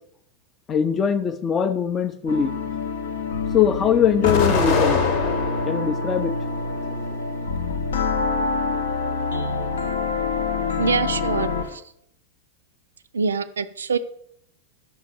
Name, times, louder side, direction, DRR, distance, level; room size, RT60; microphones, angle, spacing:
voice 1, 0.7-2.5 3.5-5.0 5.7-6.3, left 7 dB, 25° left, 11 dB, 0.4 m, -21 dB
sound 1, 2.3-11.8, left 4 dB, 65° left, 0.6 m, -26 dB
Explosion, 4.2-5.9 6.4-7.3, left 5 dB, 45° left, 0.9 m, -24 dB
voice 2, 10.8-11.8 13.1-14.0, right 5 dB, 70° right, 12 dB, 0.3 m, -24 dB
5.7 x 3.9 x 4.3 m, 0.69 s
figure-of-eight pair, 90°, 0 cm